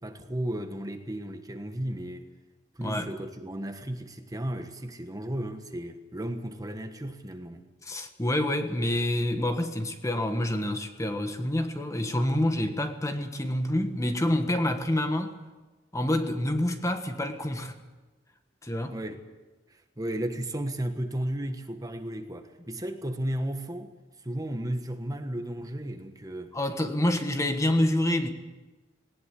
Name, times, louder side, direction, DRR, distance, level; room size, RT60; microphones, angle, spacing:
voice 1, 0.0-2.3 2.7-7.6 18.9-19.2 19.7-23.9 24.2-26.6, right 1 dB, 20° right, 1.4 m, -34 dB
voice 2, 7.8-15.4 15.9-17.8 18.6-19.0 26.5-28.3, left 1 dB, 15° left, 1.4 m, -27 dB
19.0 x 18.5 x 8.5 m
head